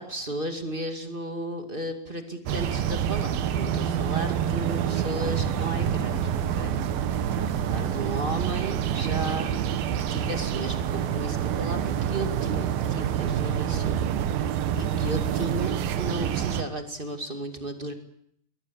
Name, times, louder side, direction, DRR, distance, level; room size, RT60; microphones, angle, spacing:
voice 1, 0.0-6.7 7.3-9.6 10.1-13.9 14.7-17.9, right 1 dB, 20° right, 5 dB, 1.7 m, -34 dB
sound 1, 2.5-16.6, right 9 dB, 85° right, 3.0 m, -27 dB
22.5 x 18.5 x 8.6 m, 0.71 s
omnidirectional pair, 4.1 m